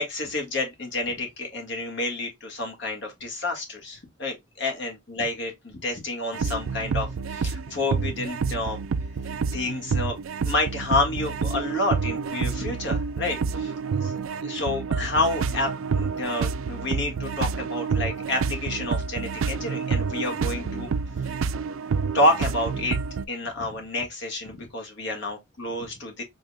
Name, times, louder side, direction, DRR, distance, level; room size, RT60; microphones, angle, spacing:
voice 1, 0.0-8.8 9.5-10.2 10.4-13.7 14.0-20.9 21.2-21.3 22.1-23.0 23.3-26.2, left 2 dB, 60° left, 1.6 m, -29 dB
sound 1, 6.3-23.3, right 5 dB, 90° right, 0.4 m, -28 dB
5.2 x 3.4 x 2.2 m
head